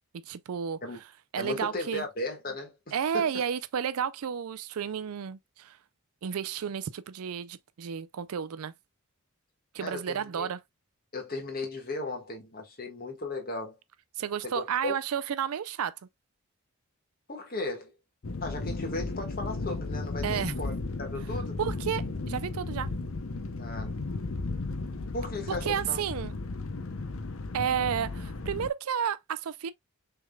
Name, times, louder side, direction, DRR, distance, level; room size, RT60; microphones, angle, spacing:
voice 1, 0.3-0.8 1.3-2.0 2.9-5.8 6.2-8.7 9.7-10.6 14.2-15.9 20.2-20.5 21.6-22.9 25.5-26.3 27.5-29.7, right 8 dB, 80° right, 0.4 m, -31 dB
voice 2, 1.4-2.7 3.1-3.2 9.8-10.5 11.1-13.7 14.4-14.9 17.3-17.9 18.4-20.7 21.0-21.6 23.5-23.9 25.1-26.0, left 2 dB, 40° left, 1.6 m, -36 dB
sound 1, 18.2-28.7, left 3 dB, 65° left, 0.7 m, -35 dB
6.3 x 3.5 x 2.2 m
head